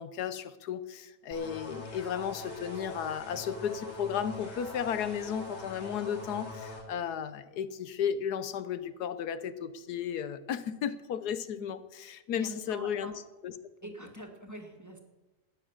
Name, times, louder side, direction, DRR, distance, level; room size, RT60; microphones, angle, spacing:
voice 1, 0.0-13.1 13.4-13.5, left 8 dB, 85° left, 13 dB, 1.4 m, -34 dB
sound 1, 1.3-6.8, left 2 dB, 50° left, 3.0 m, -43 dB
voice 2, 12.3-13.2 13.8-15.0, right 1 dB, 10° right, 3 dB, 1.6 m, -44 dB
14.5 x 9.3 x 7.3 m, 1.1 s
omnidirectional pair, 1.7 m